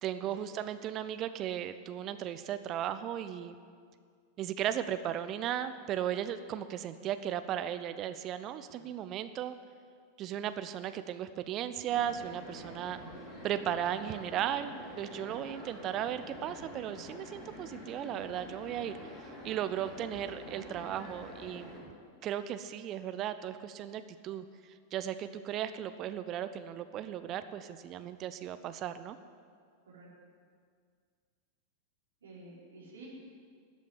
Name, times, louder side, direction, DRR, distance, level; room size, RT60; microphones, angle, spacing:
voice 1, 0.0-3.6 4.4-9.6 10.2-13.0 13.4-21.8 22.2-24.5 24.9-29.2, right 10 dB, 35° right, 11 dB, 0.6 m, -36 dB
sound 1, 11.9-21.8, equal, 15° left, 4.1 m, -47 dB
voice 2, 32.2-33.1, right 3 dB, 70° right, -5 dB, 4.4 m, -51 dB
13.5 x 8.3 x 9.6 m, 2.1 s
figure-of-eight pair, 90°, 0 cm